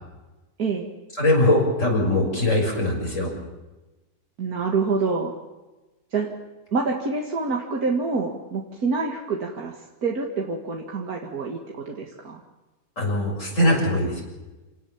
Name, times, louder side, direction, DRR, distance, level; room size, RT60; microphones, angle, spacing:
voice 1, 1.2-3.3 13.0-14.2, left 1 dB, 55° left, 0 dB, 6.8 m, -21 dB
voice 2, 4.4-5.3 6.1-6.3 6.7-9.7 10.0-12.4, right 4 dB, 75° right, 0 dB, 2.5 m, -26 dB
28.0 x 18.5 x 7.3 m, 1.1 s
omnidirectional pair, 1.6 m